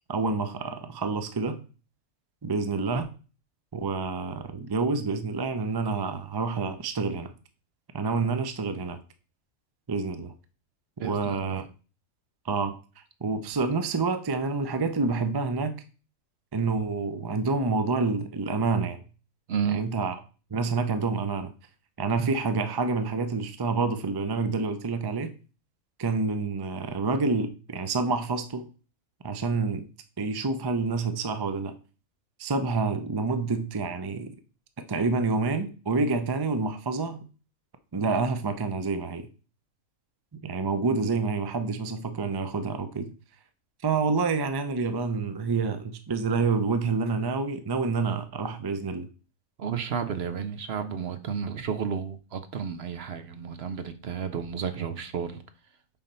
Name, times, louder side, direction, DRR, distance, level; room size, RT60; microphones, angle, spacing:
voice 1, 0.1-1.6 2.4-3.1 3.7-7.3 7.9-9.0 9.9-10.3 11.0-11.6 12.4-15.7 16.5-19.0 19.7-20.1 20.5-21.5 22.0-25.3 26.0-28.7 29.2-29.8 30.2-31.8 32.4-34.3 34.8-37.2 37.9-39.3 40.4-43.1 43.8-49.1, right 4 dB, 35° right, 0.4 m, -28 dB
voice 2, 11.0-11.7 19.5-19.9 49.6-55.4, right 7 dB, 55° right, 0.8 m, -32 dB
7.0 x 4.2 x 5.4 m
omnidirectional pair, 1.4 m